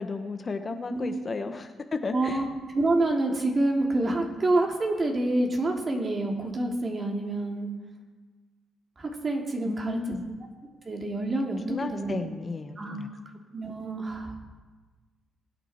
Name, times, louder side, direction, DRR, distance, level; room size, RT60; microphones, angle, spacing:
voice 1, 0.0-2.4 9.6-10.3 11.7-13.1, left 4 dB, 35° left, 7 dB, 0.9 m, -33 dB
voice 2, 0.9-1.2 2.1-2.5 2.7-7.7 9.0-10.2 10.9-12.2 12.8-13.0 13.5-14.4, right 2 dB, 35° right, 1 dB, 2.6 m, -27 dB
21.5 x 9.1 x 4.3 m, 1.3 s
cardioid pair, 90°, 0 cm